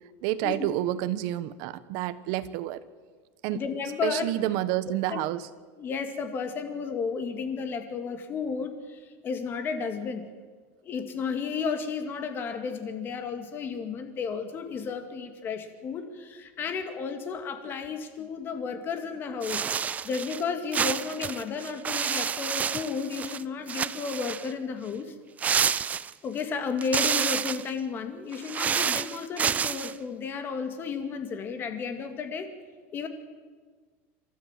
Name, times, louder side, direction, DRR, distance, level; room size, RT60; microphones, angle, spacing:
voice 1, 0.2-2.8 3.4-3.6 4.0-5.5, right 14 dB, 65° right, 14 dB, 1.1 m, -29 dB
voice 2, 3.5-4.3 5.1-5.2 5.8-10.2 10.8-25.1 26.2-32.5 32.9-33.1, left 5 dB, 35° left, 7 dB, 2.3 m, -33 dB
sound 1, 19.4-20.4 20.7-23.4 23.7-24.5 25.4-26.4 26.8-27.7 28.3-29.9, right 7 dB, 25° right, 0.5 m, -29 dB
27.5 x 13.0 x 7.5 m, 1.5 s
supercardioid pair, 140°, 7 cm